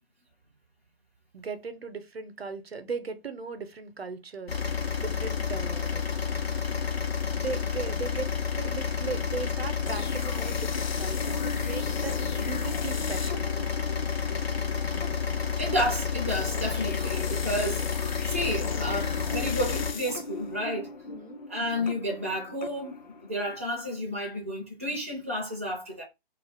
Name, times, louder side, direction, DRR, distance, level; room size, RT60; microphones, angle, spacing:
voice 1, 1.3-4.5 5.0-6.0 7.3-13.5 14.7-15.3 21.0-21.4, right 4 dB, 75° right, 0.6 m, -38 dB
sound 1, 4.5-19.9, left 6 dB, 80° left, 0.8 m, -30 dB
sound 2, 9.9-23.6, left 4 dB, 50° left, 0.4 m, -39 dB
voice 2, 15.6-20.9 21.5-26.0, equal, 15° right, 0.4 m, -31 dB
2.3 x 2.2 x 3.4 m
figure-of-eight pair, 140°, 31 cm